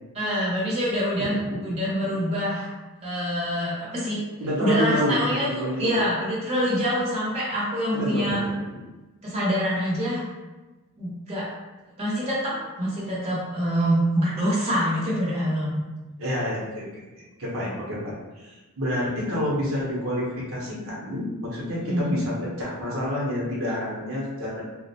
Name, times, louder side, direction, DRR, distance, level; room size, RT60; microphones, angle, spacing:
voice 1, 0.1-1.4 1.6-2.7 3.0-4.2 4.6-8.4 9.2-10.2 11.0-11.5 12.0-12.4 12.8-15.8 21.8-22.2, equal, 30° right, -7 dB, 0.8 m, -25 dB
voice 2, 1.2-1.6 4.4-5.9 7.9-8.8 16.2-24.6, left 1 dB, 65° right, -6 dB, 0.8 m, -29 dB
2.4 x 2.1 x 2.7 m, 1.1 s
head